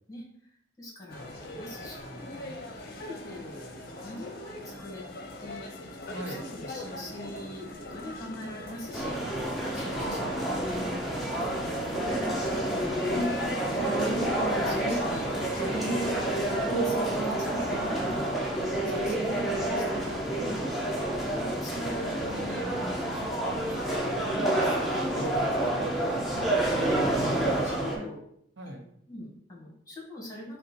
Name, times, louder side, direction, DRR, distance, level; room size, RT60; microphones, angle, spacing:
voice 1, 0.8-5.0 5.4-10.3 10.7-11.5 12.1-15.9 16.8-18.3 19.0-22.8 23.4-25.4 27.5-28.2 28.6-28.8 29.1-30.6, left 1 dB, 20° left, -3 dB, 1.4 m, -43 dB
sound 1, 1.1-16.7, left 1 dB, 50° left, 0.7 m, -42 dB
sound 2, 8.9-28.0, right 1 dB, ahead, 0.7 m, -28 dB
voice 2, 9.8-11.6 15.6-15.9 18.9-19.1 22.6-23.6 25.0-27.4 27.9-28.1 28.6-28.8, right 1 dB, 75° right, 3 dB, 0.8 m, -41 dB
5.2 x 2.2 x 4.3 m, 0.70 s
head